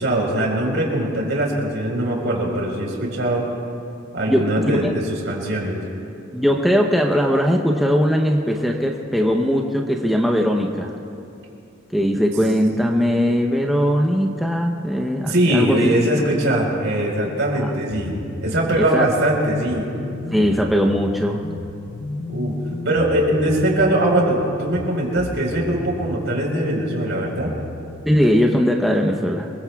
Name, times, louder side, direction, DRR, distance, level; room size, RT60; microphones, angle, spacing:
voice 1, 0.0-3.4 4.1-5.8 15.3-19.9 22.3-22.5 22.8-27.5, right 1 dB, 65° right, -1 dB, 4.3 m, -21 dB
voice 2, 4.3-4.9 5.6-5.7 6.3-10.9 11.9-15.8 17.6-17.7 18.8-19.1 20.3-21.4 28.1-29.5, equal, ahead, 0 dB, 0.8 m, -19 dB
sound 1, 17.9-28.0, left 3 dB, 60° left, 0.6 m, -34 dB
27.0 x 22.0 x 2.4 m, 2.7 s
head